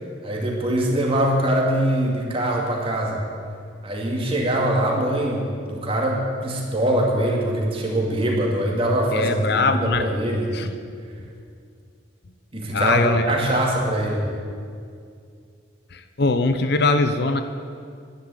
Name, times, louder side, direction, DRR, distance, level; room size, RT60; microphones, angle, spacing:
voice 1, 0.2-3.2 3.8-10.5 12.5-14.3, right 1 dB, 30° right, -1 dB, 2.4 m, -23 dB
voice 2, 9.1-10.1 10.5-10.7 12.7-13.4 15.9-17.4, left 3 dB, 55° left, 9 dB, 0.7 m, -21 dB
11.5 x 9.7 x 9.1 m, 2.3 s
head